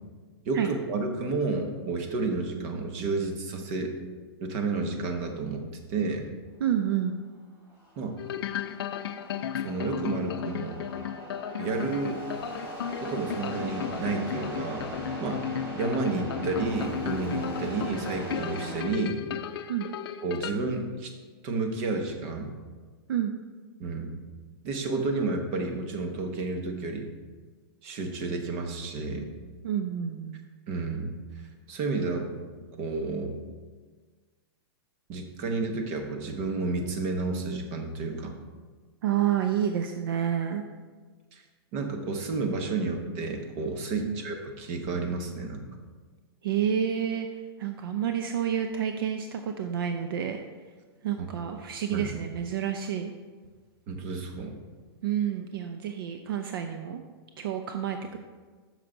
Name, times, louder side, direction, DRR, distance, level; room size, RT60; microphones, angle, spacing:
voice 1, 0.5-3.9 4.4-6.3 8.0-8.2 9.6-10.8 11.6-12.2 13.0-15.4 15.7-19.2 20.2-21.1 21.4-22.5 23.8-24.2 24.6-27.1 27.8-29.3 30.7-31.1 31.7-32.3 32.8-33.4 35.1-38.3 41.3-41.4 41.7-45.7 51.2-51.3 51.9-52.1 53.9-54.6, right 3 dB, 35° right, 4 dB, 1.0 m, -31 dB
voice 2, 6.6-7.2 17.6-17.7 19.7-19.9 23.1-23.3 29.6-30.4 39.0-40.6 44.0-44.2 46.4-47.3 47.6-50.4 51.0-53.1 55.0-57.0 57.4-58.2, right 9 dB, 60° right, 6 dB, 0.5 m, -29 dB
sound 1, 7.7-18.8, right 1 dB, 15° right, 1.8 m, -39 dB
sound 2, 8.2-20.5, left 8 dB, 65° left, 0.5 m, -35 dB
7.9 x 6.6 x 3.9 m, 1.4 s
supercardioid pair, 165°, 13 cm